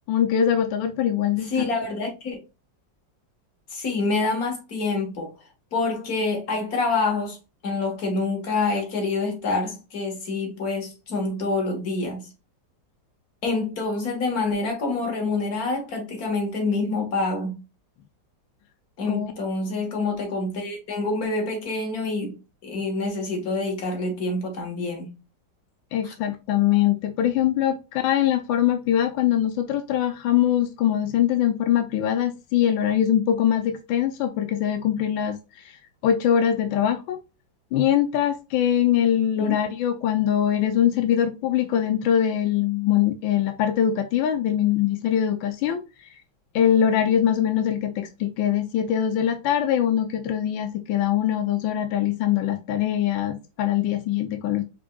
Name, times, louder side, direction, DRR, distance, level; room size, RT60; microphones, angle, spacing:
voice 1, 0.1-1.7 19.1-19.3 25.9-37.2 37.7-46.1 46.5-54.6, left 10 dB, 85° left, 1.4 m, -23 dB
voice 2, 1.4-2.4 3.7-5.3 5.7-7.4 7.6-12.3 13.4-17.6 19.0-22.4 22.6-25.1 26.0-26.1 39.4-39.6, left 3 dB, 50° left, 1.9 m, -27 dB
5.2 x 3.5 x 2.3 m
omnidirectional pair, 2.0 m